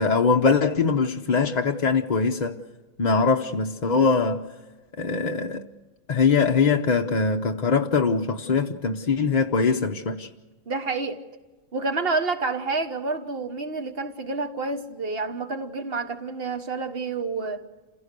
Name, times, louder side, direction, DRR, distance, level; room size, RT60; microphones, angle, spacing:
voice 1, 0.0-2.6 3.0-4.4 5.0-5.7 6.1-10.3, left 4 dB, 40° left, 0.7 m, -22 dB
voice 2, 10.7-11.2 11.7-17.7, right 3 dB, 45° right, 1.5 m, -29 dB
28.0 x 16.5 x 6.7 m
omnidirectional pair, 1.4 m